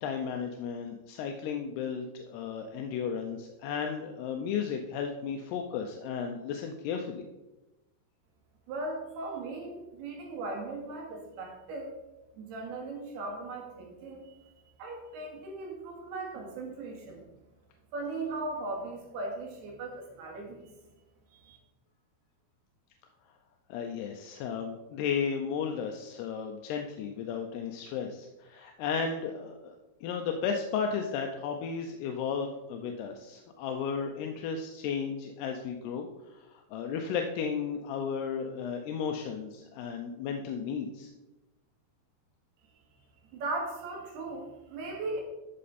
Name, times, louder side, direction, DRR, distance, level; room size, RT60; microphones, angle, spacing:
voice 1, 0.0-7.2 23.7-29.8 30.0-41.1, left 6 dB, 85° left, 3 dB, 2.8 m, -34 dB
voice 2, 8.7-11.9 12.4-14.5 14.8-17.3 17.9-20.7 21.3-21.6 43.3-45.2, right 2 dB, 75° right, 0 dB, 4.0 m, -38 dB
12.5 x 6.7 x 4.2 m, 1.0 s
omnidirectional pair, 4.6 m